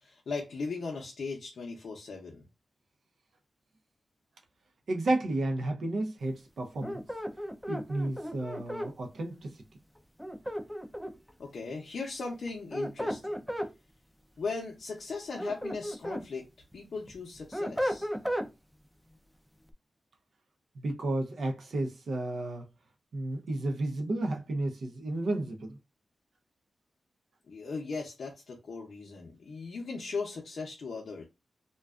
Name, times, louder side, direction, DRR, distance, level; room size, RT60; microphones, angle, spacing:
voice 1, 0.0-2.4 11.4-13.3 14.4-18.1 27.5-31.2, left 4 dB, 70° left, 0.6 m, -38 dB
voice 2, 4.9-7.0 7.7-9.6 20.8-22.7 23.1-25.8, right 2 dB, 75° right, 0.5 m, -32 dB
sound 1, 6.8-8.9 10.2-11.3 12.5-13.7 15.1-16.3 16.7-18.5, equal, ahead, 0.4 m, -34 dB
2.4 x 2.2 x 2.3 m
cardioid pair, 70°, 0 cm